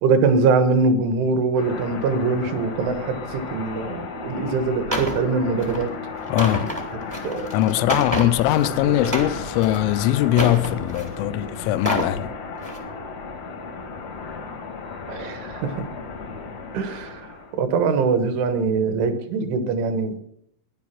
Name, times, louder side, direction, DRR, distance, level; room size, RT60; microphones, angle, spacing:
voice 1, 0.0-5.9 7.2-7.5 8.9-9.0 15.1-15.9 16.7-20.2, right 4 dB, 70° right, 3.6 m, -23 dB
sound 1, 1.6-17.6, left 4 dB, 65° left, 1.6 m, -34 dB
sound 2, 4.9-5.2 5.6-5.8 6.2-8.7 9.0-9.8 10.3-11.1 11.7-12.1 12.6-12.8, right 1 dB, 30° right, 0.6 m, -28 dB
voice 2, 6.3-6.7 7.5-12.3, left 14 dB, 80° left, 3.1 m, -21 dB
15.0 x 11.0 x 5.9 m
omnidirectional pair, 6.0 m